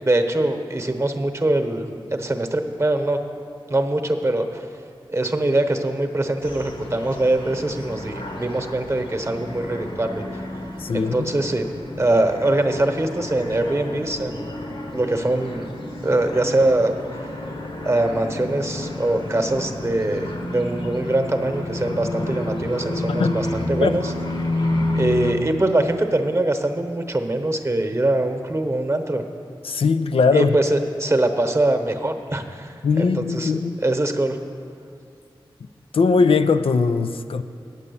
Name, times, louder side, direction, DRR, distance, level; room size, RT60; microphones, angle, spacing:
voice 1, 0.0-3.2 3.7-4.7 5.1-10.4 10.9-11.7 12.0-14.4 14.9-15.6 16.0-16.9 17.8-24.1 24.6-24.7 24.9-29.2 30.3-34.4, right 1 dB, 30° right, 6 dB, 1.0 m, -23 dB
sound 1, 6.4-25.3, left 2 dB, 65° left, 1.2 m, -30 dB
voice 2, 10.8-11.3 23.1-23.4 23.8-23.9 29.6-30.6 32.8-33.8 35.9-37.4, left 4 dB, 80° left, 10 dB, 0.4 m, -20 dB
8.7 x 8.3 x 6.9 m, 2.4 s
cardioid pair, 45°, 9 cm